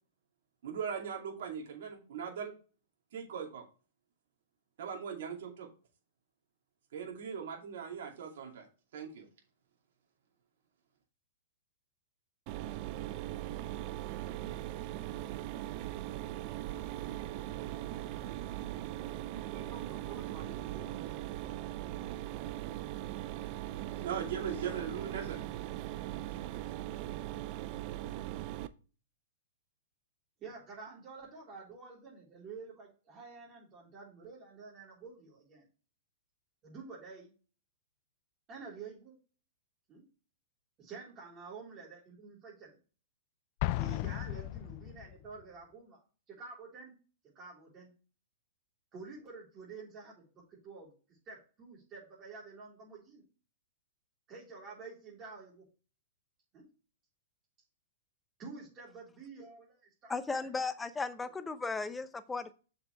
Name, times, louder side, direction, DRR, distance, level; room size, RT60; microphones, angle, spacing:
voice 1, 0.6-2.5 3.1-3.6 4.8-5.7 6.9-8.7 8.9-9.3 24.0-25.4, right 7 dB, 65° right, 1 dB, 2.5 m, -39 dB
Mechanisms, 12.5-28.7, right 14 dB, 45° right, 0.6 m, -40 dB
voice 2, 19.3-21.0 30.4-35.6 36.6-37.3 38.5-39.2 39.9-40.0 40.8-42.8 43.7-46.0 46.3-46.9 47.4-47.9 48.9-53.2 54.3-55.6 56.5-56.6 58.4-60.5, right 4 dB, 30° right, -5 dB, 3.6 m, -49 dB
Explosion, 43.6-45.3, left 17 dB, 45° left, 0.3 m, -35 dB
voice 3, 60.1-62.5, left 4 dB, 10° left, 13 dB, 0.7 m, -36 dB
6.8 x 5.7 x 3.2 m, 0.36 s
hypercardioid pair, 120°, 0 cm